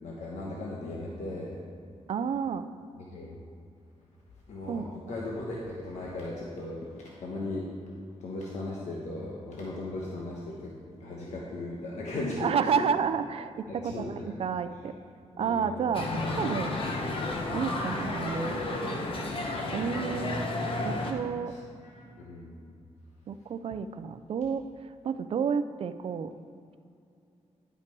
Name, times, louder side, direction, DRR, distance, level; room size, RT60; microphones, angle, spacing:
voice 1, 0.0-1.6 3.1-3.4 4.5-6.8 7.1-7.7 8.2-10.7 11.0-12.8 13.7-14.3 15.4-15.9 20.1-20.2 21.5-21.6 21.8-22.6, left 2 dB, 80° left, -3 dB, 1.1 m, -37 dB
voice 2, 2.1-2.7 4.7-5.1 12.4-14.9 15.4-16.7 17.5-18.6 19.7-20.5 20.8-21.5 23.3-24.6 25.0-26.3, right 6 dB, 55° right, 11 dB, 0.4 m, -30 dB
sound 1, 15.9-21.1, left 2 dB, 50° left, 1.0 m, -32 dB
10.5 x 5.8 x 4.6 m, 2.5 s
wide cardioid pair, 150°, 12 cm